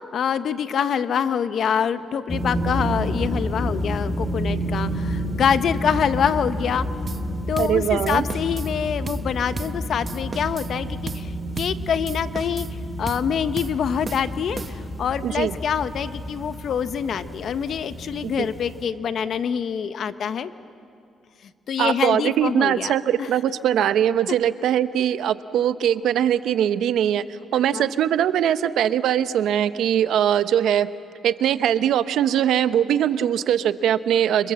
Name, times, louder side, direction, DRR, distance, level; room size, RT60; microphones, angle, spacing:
voice 1, 0.0-6.9 7.5-11.3 11.6-12.7 13.0-20.5 21.7-22.9 23.2-23.3 27.7-27.9, left 7 dB, 60° left, 11 dB, 1.1 m, -25 dB
sound 1, 2.3-18.8, equal, 20° left, 4.4 m, -30 dB
sound 2, 7.1-7.3 7.6-7.8 8.1-8.7 9.1-9.3 9.6-9.8 10.1-10.7 11.1-11.3 11.6-11.8 12.1-12.8 13.1-13.3 13.6-13.8 14.1-15.0, right 4 dB, 35° right, 1.1 m, -35 dB
voice 2, 7.6-8.2 15.2-15.5 18.2-18.5 21.8-30.9 31.2-34.5, right 10 dB, 75° right, 12 dB, 0.8 m, -21 dB
28.0 x 26.0 x 7.6 m, 2.5 s
cardioid pair, 90°, 0 cm